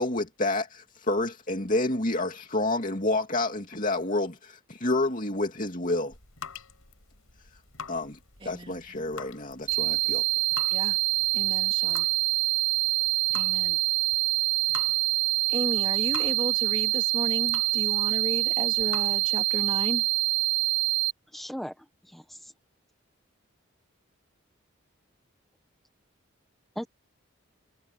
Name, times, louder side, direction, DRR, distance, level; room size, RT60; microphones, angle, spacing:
voice 1, 0.0-6.1 7.9-8.2 8.4-10.2, left 2 dB, 40° left, 2.6 m, -29 dB
sound 1, 5.9-19.4, left 6 dB, 85° left, 5.8 m, -46 dB
voice 2, 8.4-8.8 10.7-11.0 11.3-12.1 13.3-13.8 15.5-20.0, right 1 dB, 25° right, 3.3 m, -34 dB
sound 2, 9.7-21.1, right 26 dB, 55° right, 1.1 m, -25 dB
voice 3, 21.3-22.5 26.8-26.9, equal, ahead, 1.1 m, -38 dB
head